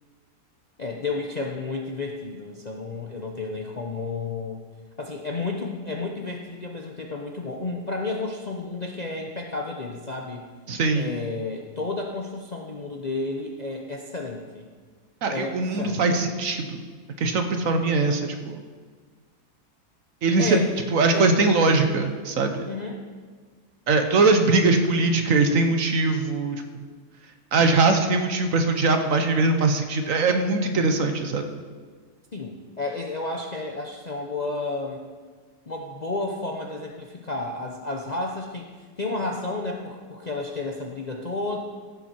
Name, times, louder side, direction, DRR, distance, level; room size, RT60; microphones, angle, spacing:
voice 1, 0.8-4.6 5.0-10.5 10.9-14.7 15.3-16.0 20.4-20.7 21.1-21.8 22.6-23.0 32.3-35.1 35.7-38.7 39.0-41.6, left 3 dB, 40° left, 0 dB, 0.6 m, -31 dB
voice 2, 10.7-11.1 15.2-16.8 17.2-18.6 20.2-20.6 20.9-22.7 23.9-26.6 27.5-31.4, right 3 dB, 60° right, 6 dB, 1.2 m, -21 dB
15.0 x 7.3 x 4.4 m, 1.5 s
omnidirectional pair, 1.7 m